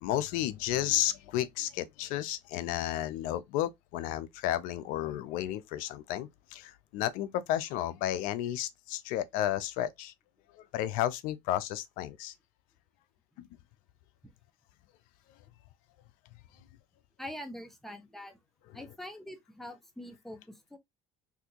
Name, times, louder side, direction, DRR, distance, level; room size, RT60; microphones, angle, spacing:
voice 1, 0.0-10.1 10.6-12.3 13.4-13.5, left 12 dB, 80° left, 0.4 m, -32 dB
voice 2, 17.2-18.4 18.7-20.8, left 1 dB, ahead, 0.8 m, -44 dB
3.4 x 2.6 x 2.8 m
supercardioid pair, 100°, 14 cm